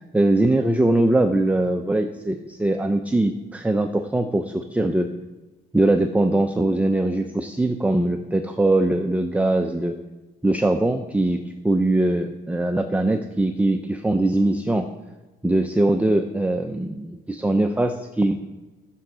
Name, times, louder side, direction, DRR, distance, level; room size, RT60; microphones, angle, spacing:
voice 1, 0.0-5.1 5.7-9.9 10.4-11.4 11.6-14.9 15.4-18.5, right 1 dB, 5° right, 5 dB, 0.6 m, -21 dB
11.0 x 7.2 x 5.0 m, 1.2 s
cardioid pair, 90°, 20 cm